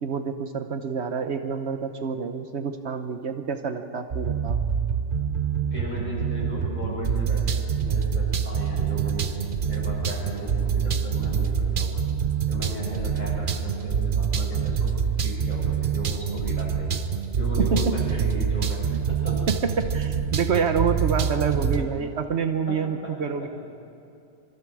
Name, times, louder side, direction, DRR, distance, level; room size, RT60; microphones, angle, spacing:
voice 1, 0.0-4.6 17.6-18.2 18.9-19.0 19.5-23.5, right 6 dB, 70° right, 7 dB, 1.2 m, -27 dB
sound 1, 4.1-21.8, right 7 dB, 50° right, 0.9 m, -26 dB
voice 2, 5.7-9.3 9.7-11.9 12.5-14.9 15.2-16.9 17.3-18.8 19.1-19.4 21.3-21.4 21.8-21.9 22.7-23.1 23.4-23.5, equal, 40° left, -5 dB, 7.4 m, -36 dB
25.0 x 25.0 x 4.8 m, 2.5 s
omnidirectional pair, 1.2 m